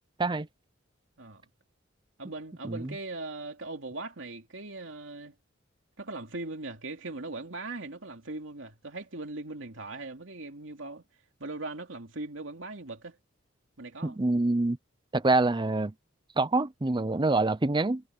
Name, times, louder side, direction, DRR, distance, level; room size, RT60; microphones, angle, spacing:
voice 1, 2.2-5.3 6.0-11.0 11.4-13.2 13.8-14.2, right 2 dB, 75° right, 2.7 m, -39 dB
voice 2, 14.0-14.8 15.1-15.9 16.4-18.0, right 2 dB, 25° right, 0.6 m, -26 dB
head